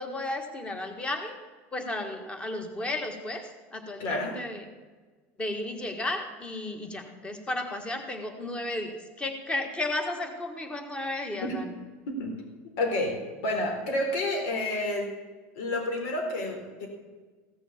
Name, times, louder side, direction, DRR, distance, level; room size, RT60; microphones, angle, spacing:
voice 1, 0.0-1.3 1.7-4.6 5.4-11.7, left 2 dB, 15° left, 6 dB, 1.7 m, -33 dB
voice 2, 4.0-4.3 11.5-11.6 12.1-12.4 12.8-15.1 15.5-16.9, left 1 dB, 80° left, 2 dB, 4.0 m, -29 dB
16.0 x 6.9 x 7.3 m, 1.4 s
supercardioid pair, 140°, 7 cm